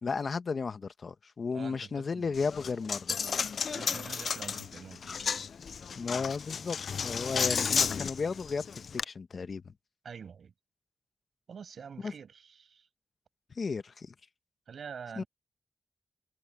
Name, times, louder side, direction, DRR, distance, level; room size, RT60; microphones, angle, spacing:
voice 1, 0.0-3.2 6.0-6.8 7.0-9.7 12.0-12.1 13.5-14.1 15.2-15.3, left 5 dB, 55° left, 1.1 m, -34 dB
voice 2, 1.5-2.4 3.7-5.4 10.0-10.5 11.5-12.9 14.7-15.3, right 6 dB, 80° right, 6.6 m, -46 dB
Coin (dropping), 2.3-9.0, left 6 dB, 70° left, 0.4 m, -33 dB
wide cardioid pair, 120°, 0 cm